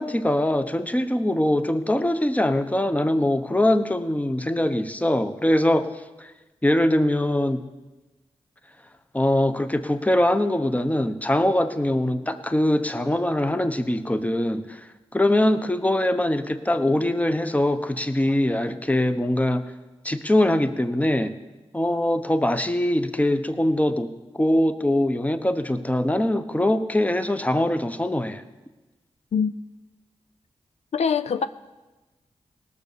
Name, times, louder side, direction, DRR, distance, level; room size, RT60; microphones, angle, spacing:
voice 1, 0.0-5.9 6.2-6.3 6.6-7.6 9.1-19.7 20.0-21.3 21.7-24.1 24.4-28.4, left 1 dB, 15° left, 10 dB, 1.0 m, -22 dB
voice 2, 30.9-31.5, left 6 dB, 75° left, 11 dB, 0.5 m, -23 dB
18.0 x 6.8 x 6.9 m, 1.1 s
cardioid pair, 50°, 11 cm